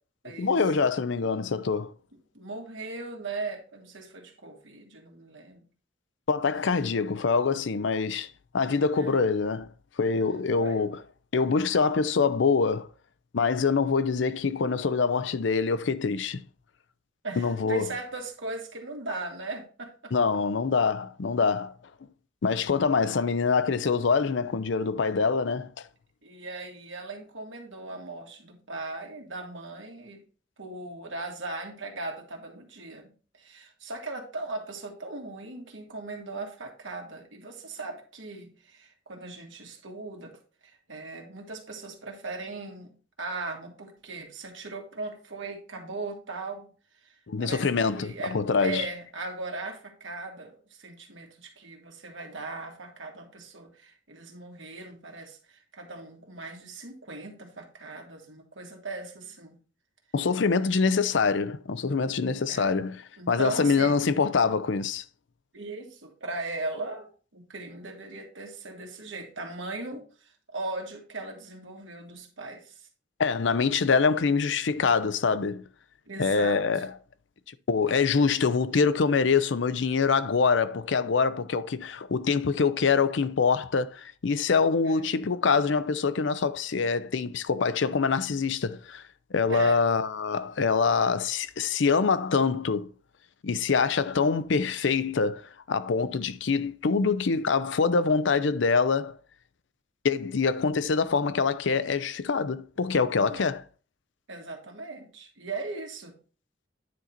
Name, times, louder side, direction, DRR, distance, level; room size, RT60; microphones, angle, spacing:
voice 1, 0.4-1.9 6.3-8.3 8.5-9.7 10.0-11.0 11.3-12.9 13.3-16.4 17.4-17.9 20.1-21.7 22.4-25.8 47.3-48.8 60.1-63.0 63.3-65.0 73.2-75.6 76.2-76.9 77.7-89.0 89.3-92.9 93.4-99.2 100.0-103.6, left 5 dB, 70° left, 0.5 m, -25 dB
voice 2, 2.3-5.7 8.9-9.2 10.6-10.9 17.2-20.1 26.2-30.2 30.6-42.9 43.2-46.7 47.0-59.6 62.5-62.8 63.2-64.0 65.5-72.9 76.1-76.9 84.8-85.2 89.5-89.8 103.3-103.5 104.3-106.1, right 3 dB, 80° right, 1.9 m, -38 dB
9.5 x 4.0 x 4.3 m
head